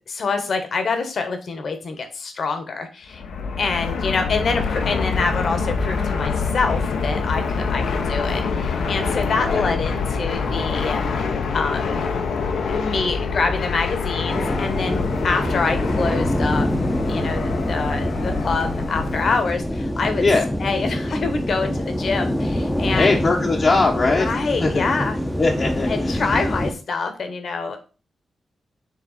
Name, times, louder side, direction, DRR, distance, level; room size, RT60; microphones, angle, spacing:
voice 1, 0.1-3.2 3.6-11.1 11.5-12.0 12.7-16.7 17.1-20.2 20.6-23.2 24.1-25.2 25.9-27.8, left 4 dB, 65° left, 7 dB, 1.3 m, -26 dB
Fixed-wing aircraft airplane, 3.1-19.5, left 5 dB, 85° left, 0.9 m, -25 dB
voice 2, 9.4-9.8 20.2-20.5 22.9-24.9 25.4-26.2, left 3 dB, 45° left, -1 dB, 0.9 m, -21 dB
sound 1, 14.3-26.7, equal, 10° left, 0.8 m, -25 dB
7.5 x 3.4 x 4.1 m, 0.35 s
cardioid pair, 80°, 0 cm